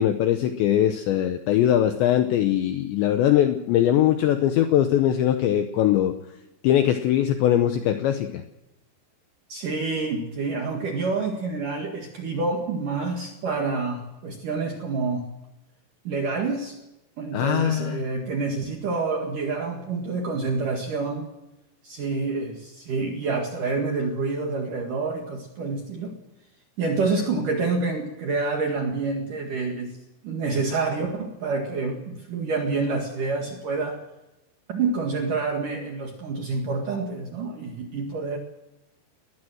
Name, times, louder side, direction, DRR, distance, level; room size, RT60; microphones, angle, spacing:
voice 1, 0.0-6.2 6.6-8.4 17.3-18.0, left 11 dB, 75° left, 7 dB, 2.8 m, -21 dB
voice 2, 9.5-15.2 16.0-16.7 17.2-21.2 21.8-26.1 26.8-29.9 30.2-34.0 34.7-38.4, right 4 dB, 55° right, 2 dB, 2.7 m, -27 dB
21.5 x 20.0 x 6.2 m, 0.93 s
omnidirectional pair, 6.0 m